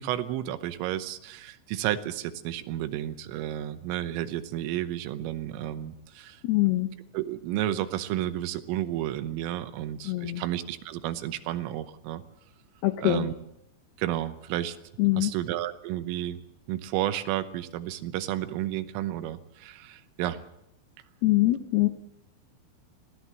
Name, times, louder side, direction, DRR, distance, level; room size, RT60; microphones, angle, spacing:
voice 1, 0.0-6.4 7.1-12.2 13.0-13.3 14.0-14.8 15.2-16.4 16.7-20.4, right 13 dB, 90° right, 11 dB, 3.6 m, -32 dB
voice 2, 6.4-6.9 10.1-10.4 12.8-13.3 15.0-15.3 21.2-21.9, left 18 dB, 80° left, 9 dB, 2.3 m, -23 dB
22.0 x 16.0 x 7.6 m, 0.81 s
omnidirectional pair, 5.7 m